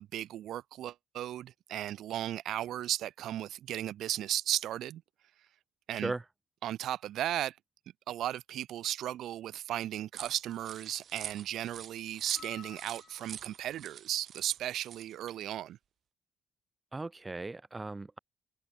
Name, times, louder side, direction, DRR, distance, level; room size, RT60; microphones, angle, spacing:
voice 1, 0.0-5.0 5.9-6.1 6.6-7.6 8.1-15.8, right 12 dB, 80° right, 1.3 m, -35 dB
voice 2, 5.9-6.2 16.9-18.2, right 3 dB, 20° right, 3.1 m, -37 dB
sound 1, 10.1-15.4, right 8 dB, 60° right, 3.8 m, -46 dB
sound 2, 12.3-13.7, left 9 dB, 65° left, 5.1 m, -52 dB
cardioid pair, 90°, 0 cm